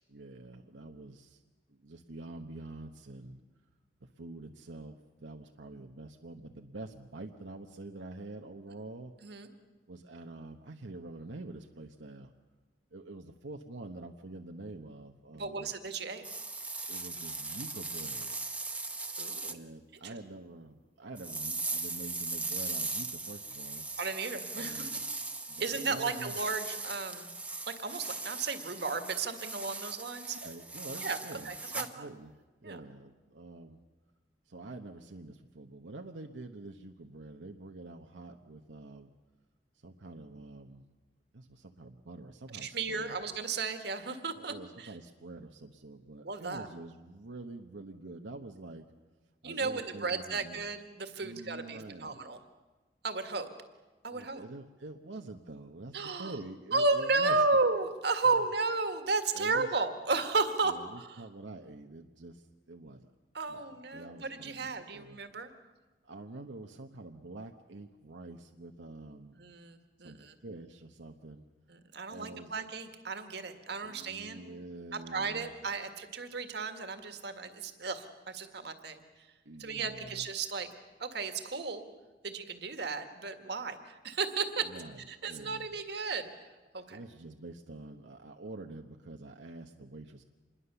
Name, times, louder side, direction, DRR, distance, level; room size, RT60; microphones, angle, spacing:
voice 1, 0.1-1.4 1.7-3.4 4.0-9.5 9.9-12.3 12.9-15.7 16.9-18.5 19.5-23.9 24.5-25.0 25.5-26.3 30.3-33.8 34.4-39.1 39.7-40.9 41.3-43.2 44.4-48.9 49.4-50.6 51.2-52.2 54.1-57.4 59.3-59.7 60.6-63.1 63.5-65.2 66.0-69.4 70.0-71.5 72.1-72.5 73.8-75.5 79.4-80.3 84.6-85.7 86.8-90.2, right 2 dB, 90° right, 3 dB, 1.1 m, -46 dB
voice 2, 15.3-16.2 19.2-19.5 20.0-20.1 24.0-24.9 25.6-27.3 27.7-30.4 31.0-31.2 31.4-32.1 32.6-32.8 42.5-44.9 46.2-46.7 49.4-52.4 53.0-53.5 54.0-54.4 55.9-56.4 56.7-61.2 63.3-65.5 69.4-70.3 71.7-74.4 74.9-79.3 79.6-80.7 81.0-81.8 82.2-84.7 85.1-87.0, right 3 dB, 65° right, 7 dB, 1.9 m, -34 dB
sound 1, 16.2-19.6 21.2-31.9, right 3 dB, 10° right, 1.0 m, -39 dB
26.5 x 21.5 x 7.0 m, 1.2 s
head